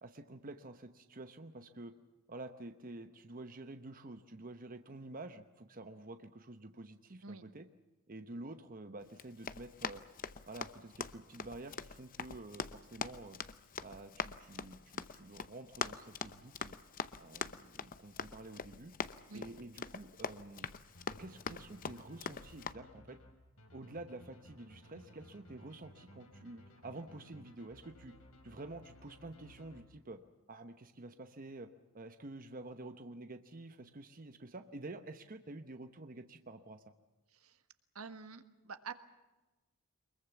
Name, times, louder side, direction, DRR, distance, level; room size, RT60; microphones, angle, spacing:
voice 1, 0.0-1.9 2.3-7.7 8.1-10.0 10.5-13.4 13.8-16.8 17.2-18.9 19.3-20.7 21.2-23.2 23.7-28.1 28.4-30.2 30.5-31.7 31.9-36.8, right 2 dB, 40° right, 8 dB, 1.0 m, -49 dB
Run, 9.1-22.7, left 5 dB, 40° left, 0.8 m, -44 dB
sound 1, 20.9-30.3, equal, 80° left, 4.3 m, -58 dB
voice 2, 37.3-37.6 37.9-38.9, right 5 dB, 80° right, 9 dB, 1.6 m, -47 dB
24.0 x 22.0 x 7.1 m, 1.1 s
head